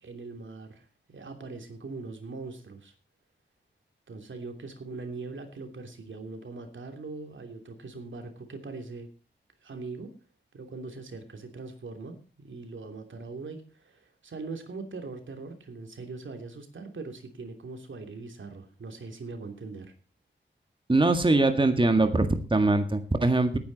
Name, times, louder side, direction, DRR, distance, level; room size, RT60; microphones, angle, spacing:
voice 1, 0.0-2.9 4.1-9.1 9.6-10.1 10.5-19.9, right 3 dB, 85° right, 5 dB, 3.0 m, -41 dB
voice 2, 20.9-23.6, right 2 dB, 25° right, 7 dB, 1.8 m, -22 dB
18.0 x 9.9 x 4.1 m, 0.36 s
wide cardioid pair, 85°, 19 cm